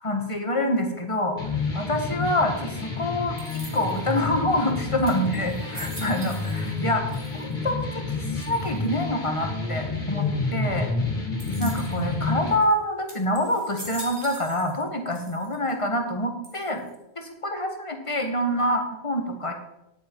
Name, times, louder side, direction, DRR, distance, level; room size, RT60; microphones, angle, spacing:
voice 1, 0.0-1.4 1.7-3.4 3.7-8.1 8.3-10.9 11.6-16.8 17.1-19.5, left 1 dB, 30° left, 4 dB, 1.4 m, -26 dB
sound 1, 1.4-12.5, left 3 dB, 55° left, 2.4 m, -29 dB
sound 2, 3.4-4.1 4.7-4.8 5.1-6.8 7.1-7.7 8.4-8.9 11.4-12.1 12.6-12.7 13.1-14.8 15.1-15.7 16.4-17.0, right 1 dB, 25° right, 2.0 m, -43 dB
9.7 x 8.8 x 4.5 m, 0.88 s
omnidirectional pair, 1.1 m